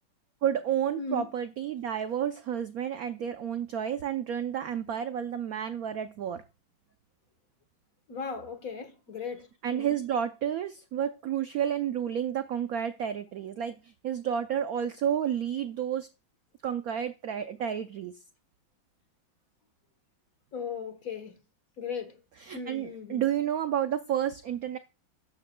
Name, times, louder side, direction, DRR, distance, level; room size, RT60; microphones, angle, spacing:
voice 1, 0.4-6.4 9.6-16.1 16.6-18.1 22.5-24.8, right 9 dB, 80° right, 0.8 m, -31 dB
voice 2, 1.0-1.3 8.1-10.0 20.5-21.4 21.8-22.2 22.5-23.3, left 5 dB, 50° left, 1.4 m, -37 dB
12.5 x 9.7 x 2.2 m
omnidirectional pair, 2.2 m